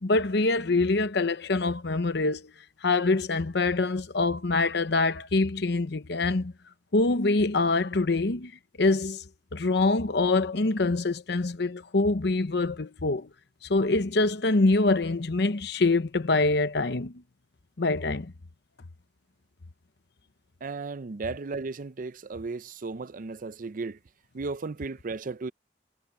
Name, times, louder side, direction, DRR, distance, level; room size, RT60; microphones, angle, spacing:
voice 1, 0.0-2.5 2.8-6.5 6.9-8.5 8.8-9.2 9.5-13.3 13.7-17.1 17.8-18.3, left 3 dB, 65° left, 0.9 m, -25 dB
voice 2, 20.6-24.0 24.3-25.5, right 3 dB, 50° right, 0.5 m, -35 dB
head